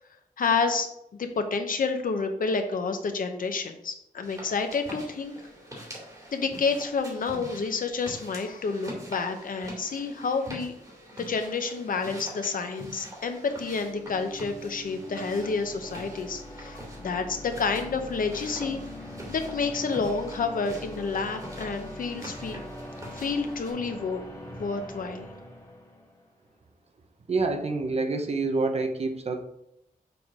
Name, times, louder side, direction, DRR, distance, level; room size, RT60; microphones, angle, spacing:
voice 1, 0.4-0.9 1.2-5.4 6.3-10.7 11.2-18.8 19.3-22.6 23.1-24.2 24.5-25.3, left 4 dB, 70° left, 6 dB, 0.9 m, -29 dB
sound 1, 4.2-23.7, equal, 25° right, 2.4 m, -45 dB
sound 2, 13.4-26.3, left 1 dB, 20° left, 2.1 m, -42 dB
voice 2, 27.3-29.4, right 3 dB, 45° right, 6 dB, 0.7 m, -27 dB
6.8 x 3.8 x 4.8 m, 0.81 s
wide cardioid pair, 150°, 15 cm